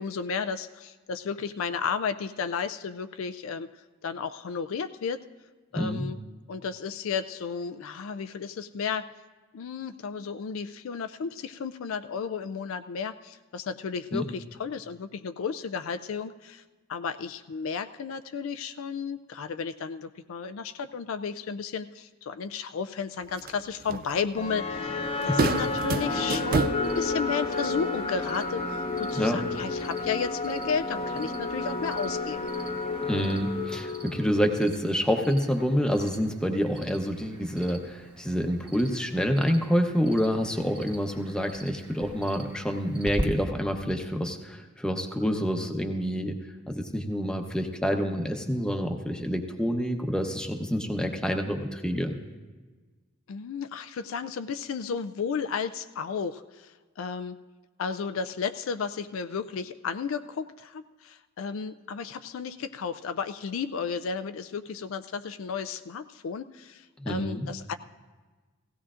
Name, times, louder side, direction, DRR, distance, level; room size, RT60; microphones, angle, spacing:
voice 1, 0.0-3.7 4.0-5.2 5.7-6.2 6.5-9.1 9.5-16.6 16.9-24.9 25.2-32.5 53.3-57.4 57.8-67.7, left 6 dB, 75° left, 10 dB, 0.4 m, -33 dB
voice 2, 5.8-6.1 14.1-14.2 25.1-25.5 29.1-29.4 33.1-46.4 46.7-52.2 67.0-67.5, equal, 5° left, 4 dB, 0.8 m, -27 dB
sound 1, 23.2-33.8, right 4 dB, 45° right, 0.4 m, -35 dB
sound 2, 24.4-34.6, left 3 dB, 30° left, 0.9 m, -31 dB
Cricket, 25.4-43.2, right 1 dB, 20° right, 1.7 m, -44 dB
17.0 x 16.0 x 2.5 m, 1.3 s
head